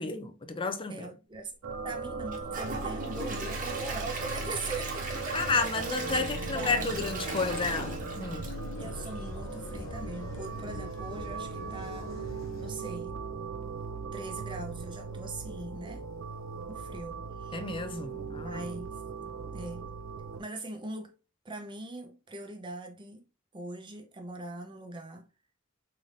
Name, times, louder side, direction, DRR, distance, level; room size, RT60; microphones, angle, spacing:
voice 1, 0.0-1.1 5.3-8.5 17.5-18.7, left 4 dB, 25° left, 0.5 m, -32 dB
voice 2, 0.9-1.5 1.8-5.4 6.5-7.0 8.8-13.2 14.1-16.1 16.7-17.6 18.4-19.0 19.5-19.8 20.4-21.2 21.4-23.2 23.5-25.2, right 2 dB, 25° right, 0.8 m, -41 dB
sound 1, 1.6-20.4, right 4 dB, 75° right, 0.5 m, -39 dB
Gurgling / Toilet flush / Trickle dribble, 2.3-9.3 9.7-9.8 10.3-10.4, right 2 dB, 45° right, 1.1 m, -38 dB
sound 2, 6.1-12.7, left 2 dB, 80° left, 0.7 m, -44 dB
3.8 x 3.4 x 2.6 m
head